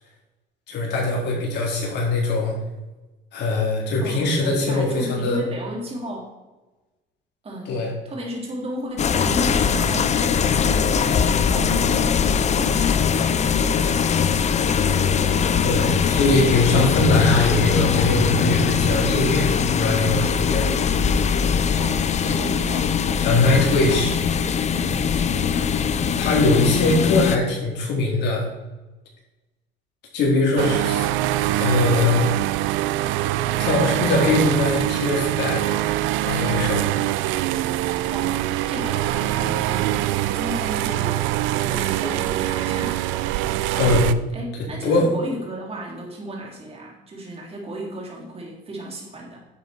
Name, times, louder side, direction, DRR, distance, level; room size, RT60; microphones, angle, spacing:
voice 1, 0.7-2.5 3.3-5.4 7.7-7.9 15.6-20.7 23.2-24.1 26.2-28.4 30.1-31.1 31.6-32.3 33.6-35.8 36.2-36.8 43.7-44.1 44.8-45.1, left 2 dB, 60° left, -2 dB, 4.2 m, -21 dB
voice 2, 4.0-6.3 7.4-15.1 21.7-22.9 38.1-38.4 38.7-43.2 44.3-49.4, equal, 30° right, -1 dB, 3.7 m, -34 dB
sound 1, 9.0-27.4, left 6 dB, 35° left, 0.7 m, -21 dB
sound 2, 30.6-44.1, right 14 dB, 80° right, 0.5 m, -24 dB
10.5 x 7.7 x 4.6 m, 1.1 s
cardioid pair, 105°, 20 cm